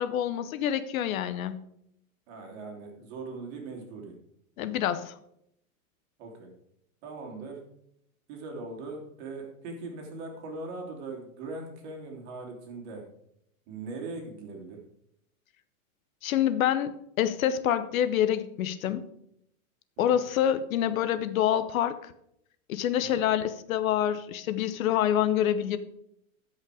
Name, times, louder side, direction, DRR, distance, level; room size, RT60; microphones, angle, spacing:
voice 1, 0.0-1.6 4.6-5.1 16.2-19.0 20.0-22.1 22.7-25.8, left 10 dB, 70° left, 13 dB, 0.9 m, -27 dB
voice 2, 2.3-4.1 6.2-6.5 7.0-7.6 8.3-13.0 13.7-14.8 20.0-20.2 23.0-23.2, right 3 dB, 50° right, 1 dB, 3.0 m, -40 dB
11.5 x 5.4 x 4.9 m, 0.74 s
hypercardioid pair, 140°, 43 cm